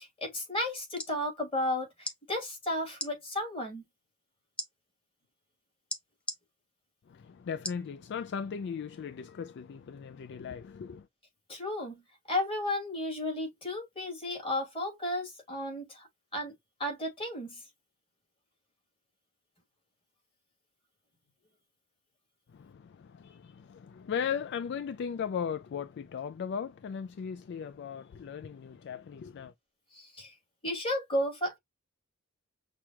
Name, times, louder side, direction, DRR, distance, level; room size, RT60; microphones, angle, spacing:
voice 1, 0.0-3.8 11.5-12.0 12.3-16.1 16.3-16.5 16.8-17.6 29.9-30.3 30.6-31.6, left 1 dB, 25° left, 2.3 m, -33 dB
sound 1, 0.7-1.1 2.0-2.2 2.9-3.1 4.6-4.7 5.9-6.4 7.6-7.9 8.4-8.5, left 1 dB, 5° left, 0.6 m, -37 dB
voice 2, 7.1-11.1 22.5-29.5, left 7 dB, 50° left, 0.3 m, -37 dB
6.1 x 2.3 x 2.8 m
head